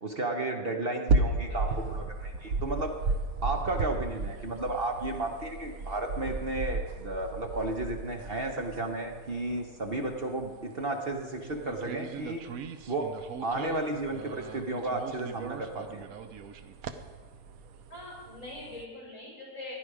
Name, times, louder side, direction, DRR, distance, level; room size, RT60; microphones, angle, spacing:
voice 1, 0.0-3.0 3.4-12.4 12.9-13.2 13.4-16.0, right 2 dB, 40° right, 3 dB, 1.1 m, -33 dB
sound 1, 1.1-18.8, right 3 dB, 65° right, 1.2 m, -35 dB
voice 2, 1.5-2.0 17.9-19.8, left 1 dB, 50° left, -4 dB, 5.5 m, -43 dB
16.0 x 10.5 x 4.8 m, 1.5 s
omnidirectional pair, 1.7 m